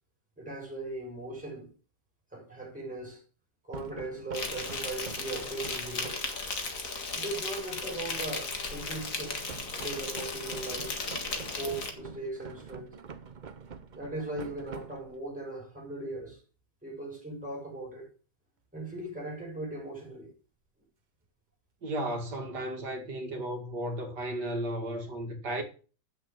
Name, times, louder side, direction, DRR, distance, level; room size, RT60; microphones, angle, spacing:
voice 1, 0.4-1.7 2.3-3.2 3.7-6.2 7.1-9.4 9.7-10.9 11.6-12.9 14.0-16.4 16.8-18.1 18.7-20.3, right 2 dB, 5° right, 6.8 m, -38 dB
sound 1, 3.7-6.4 9.5-15.4, right 6 dB, 50° right, 0.5 m, -46 dB
Insect, 4.3-11.9, left 3 dB, 50° left, 2.3 m, -36 dB
voice 2, 21.8-25.6, right 1 dB, 65° right, 2.8 m, -34 dB
8.9 x 7.5 x 7.5 m
omnidirectional pair, 1.9 m